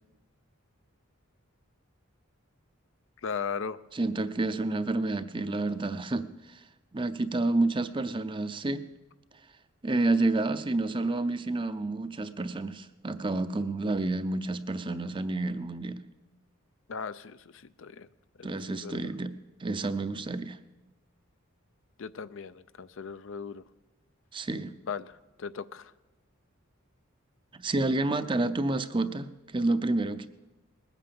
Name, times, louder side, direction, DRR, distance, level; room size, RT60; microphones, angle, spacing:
voice 1, 3.2-3.8 16.9-18.1 18.4-19.1 22.0-23.6 24.9-25.9, left 5 dB, 65° left, 14 dB, 0.5 m, -38 dB
voice 2, 3.9-6.6 6.9-8.8 9.8-16.0 18.4-19.3 19.6-20.6 24.3-24.7 27.5-29.3 29.5-30.3, right 2 dB, 25° right, 12 dB, 0.6 m, -29 dB
20.0 x 9.2 x 6.9 m, 1.0 s
head